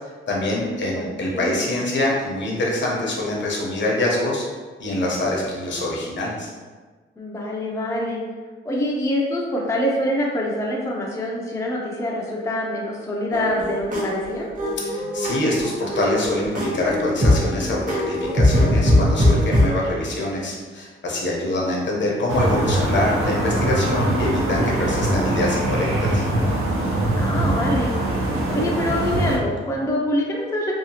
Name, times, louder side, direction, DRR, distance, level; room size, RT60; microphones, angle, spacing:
voice 1, 0.3-4.5 4.8-6.5 14.8-25.9 26.1-26.3, left 1 dB, 60° left, -3 dB, 0.7 m, -25 dB
voice 2, 7.2-8.2 8.7-14.5 25.0-25.5 27.1-27.9 28.5-30.7, left 1 dB, 15° left, -2 dB, 0.4 m, -25 dB
sound 1, 13.3-19.7, left 1 dB, 40° right, 0.7 m, -21 dB
sound 2, 22.3-29.4, right 1 dB, 85° right, 0.6 m, -22 dB
2.8 x 2.3 x 2.7 m, 1.4 s
cardioid pair, 100°, 21 cm